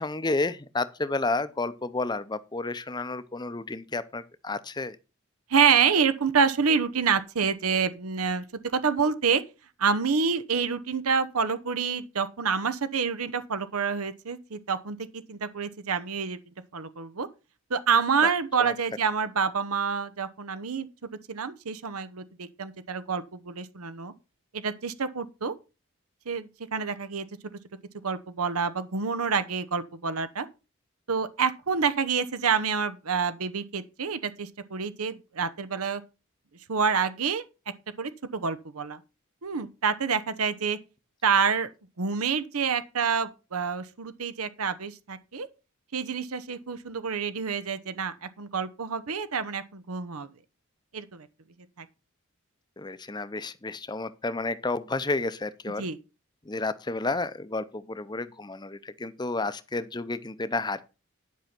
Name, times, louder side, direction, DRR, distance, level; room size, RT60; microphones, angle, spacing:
voice 1, 0.0-5.0 18.2-18.3 18.6-18.7 52.8-55.9 56.4-60.8, left 3 dB, 20° left, 0.6 m, -31 dB
voice 2, 5.5-9.4 9.8-16.4 16.7-17.3 17.7-24.1 24.5-25.5 26.3-27.3 28.0-30.5 31.1-36.0 36.7-37.4 38.0-39.0 39.4-40.8 41.2-41.7 42.0-45.5 45.9-50.3 50.9-51.3 51.8-51.9 55.8-56.0, right 6 dB, 90° right, 0.9 m, -27 dB
10.5 x 5.6 x 5.9 m
head